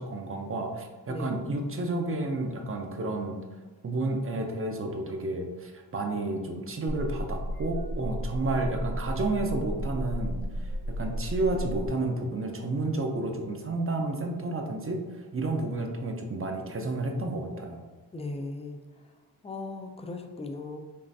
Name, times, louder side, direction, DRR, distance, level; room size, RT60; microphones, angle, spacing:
voice 1, 0.0-3.4 3.8-17.8, right 2 dB, 35° right, 3 dB, 0.5 m, -31 dB
sound 1, 6.9-11.9, equal, 70° left, 1.1 m, -33 dB
voice 2, 18.1-18.8 19.4-20.8, left 3 dB, 15° left, 5 dB, 0.4 m, -37 dB
5.3 x 2.4 x 2.7 m, 1.3 s
cardioid pair, 95°, 40 cm